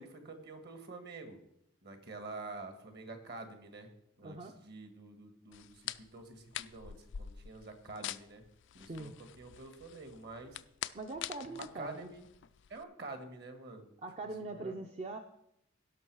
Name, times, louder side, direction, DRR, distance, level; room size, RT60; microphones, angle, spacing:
voice 1, 0.0-1.4 1.8-3.9 4.2-8.4 8.7-10.6 11.5-12.3 12.7-13.9 14.4-14.7, right 3 dB, 55° right, 7 dB, 1.6 m, -48 dB
voice 2, 4.2-4.5 8.8-9.1 10.9-12.1 14.0-15.2, right 2 dB, 30° right, 4 dB, 0.6 m, -42 dB
sound 1, 5.5-12.8, left 11 dB, 60° left, 0.4 m, -46 dB
16.5 x 6.1 x 4.7 m, 0.78 s
head